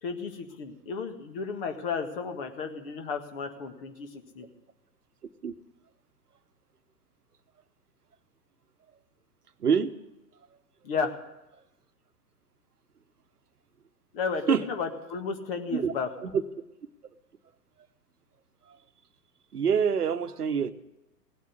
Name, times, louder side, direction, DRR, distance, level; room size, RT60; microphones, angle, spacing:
voice 1, 0.0-4.5 10.8-11.1 14.1-16.1, left 5 dB, 35° left, 6 dB, 1.7 m, -33 dB
voice 2, 9.6-9.9 14.5-14.6 15.7-15.9 16.2-16.3 19.5-20.7, right 7 dB, 65° right, 12 dB, 1.1 m, -25 dB
17.0 x 8.3 x 8.4 m, 0.95 s
figure-of-eight pair, 115°, 49 cm